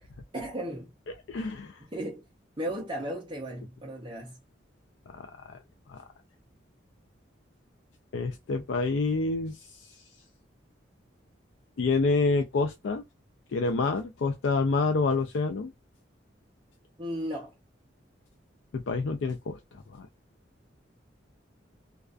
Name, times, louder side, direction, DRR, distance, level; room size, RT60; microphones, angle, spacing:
voice 1, 0.3-0.9 1.8-2.2 2.6-4.4 17.0-17.5, right 1 dB, 25° right, 0.5 m, -35 dB
voice 2, 1.3-1.8 5.1-5.3 5.9-6.0 8.1-9.6 11.8-13.1 13.5-15.7 18.7-19.6 19.9-20.1, left 3 dB, 75° left, 0.4 m, -27 dB
2.3 x 2.3 x 2.4 m
head